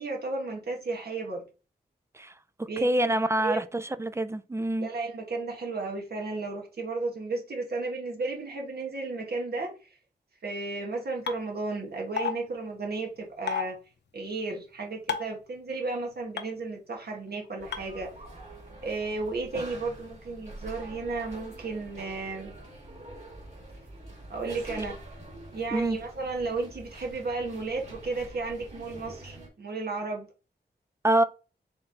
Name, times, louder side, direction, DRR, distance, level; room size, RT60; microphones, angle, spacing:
voice 1, 0.0-1.4 2.7-3.1 3.4-3.6 4.8-9.7 10.4-13.8 14.1-18.1 18.8-22.5 24.3-25.0 25.5-30.3, right 3 dB, 60° right, 1.4 m, -33 dB
voice 2, 2.6-4.9 25.7-26.0 31.0-31.2, right 1 dB, 15° right, 0.3 m, -26 dB
sound 1, 11.3-11.4 12.2-12.3 13.5-13.6 15.1-15.3 16.4-16.5 17.7-17.8, left 7 dB, 70° left, 0.6 m, -28 dB
sound 2, 17.6-29.5, right 1 dB, 40° right, 1.9 m, -46 dB
4.1 x 3.3 x 3.9 m
wide cardioid pair, 110°, 18 cm